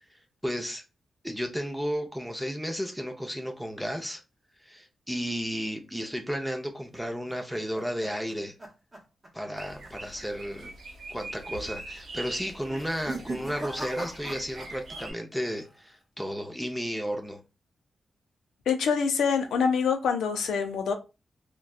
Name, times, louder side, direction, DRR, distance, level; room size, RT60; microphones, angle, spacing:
voice 1, 0.4-0.8 1.2-4.2 4.6-8.5 9.3-10.7 11.1-17.4, equal, ahead, 0.6 m, -33 dB
sound 1, 7.1-9.6 9.8-10.2 10.5-10.6 11.4-11.8 12.6-15.1 15.3-15.9, right 2 dB, 20° right, 1.0 m, -41 dB
sound 2, 9.6-15.1, right 2 dB, 80° right, 0.8 m, -43 dB
voice 2, 18.7-20.9, left 6 dB, 90° left, 0.4 m, -25 dB
2.5 x 2.2 x 2.3 m
supercardioid pair, 50°, 0 cm